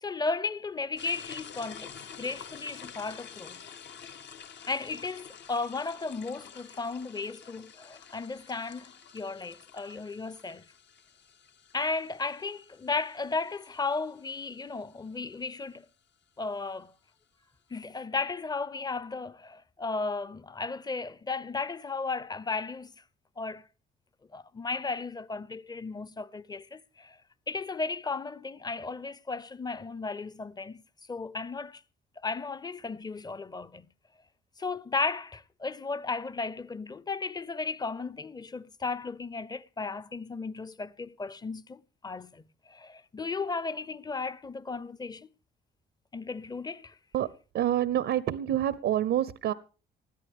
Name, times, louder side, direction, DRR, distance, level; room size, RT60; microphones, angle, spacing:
voice 1, 0.0-3.6 4.7-10.6 11.7-15.9 16.4-16.9 17.7-22.9 23.4-23.6 24.3-27.2 27.5-30.8 31.1-31.8 32.2-33.9 34.6-45.3 46.1-47.0, left 4 dB, 20° left, 0.7 m, -35 dB
sound 1, 1.0-15.3, left 7 dB, 60° left, 1.2 m, -49 dB
voice 2, 47.5-49.5, right 11 dB, 75° right, 0.7 m, -27 dB
20.0 x 13.0 x 3.5 m
cardioid pair, 90°, 20 cm